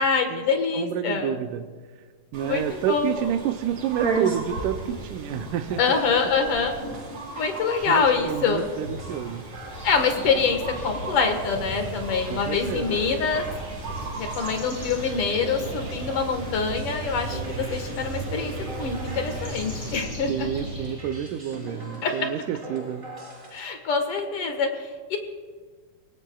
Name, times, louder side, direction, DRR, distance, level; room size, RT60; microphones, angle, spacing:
voice 1, 0.0-1.3 2.4-2.6 2.9-3.2 5.8-6.8 7.3-8.7 9.8-13.5 14.1-20.5 22.0-22.1 23.5-25.2, left 5 dB, 55° left, 5 dB, 2.1 m, -25 dB
voice 2, 0.7-1.7 2.3-5.8 7.9-9.4 12.3-13.0 20.3-23.0, right 10 dB, 85° right, 7 dB, 2.2 m, -29 dB
sound 1, 2.3-20.0, right 3 dB, 65° right, 3.9 m, -36 dB
sound 2, 5.2-23.6, right 1 dB, 20° right, 5.8 m, -41 dB
sound 3, 9.7-21.0, right 2 dB, 30° left, 6.4 m, -38 dB
25.5 x 18.0 x 2.3 m, 1.5 s
omnidirectional pair, 3.6 m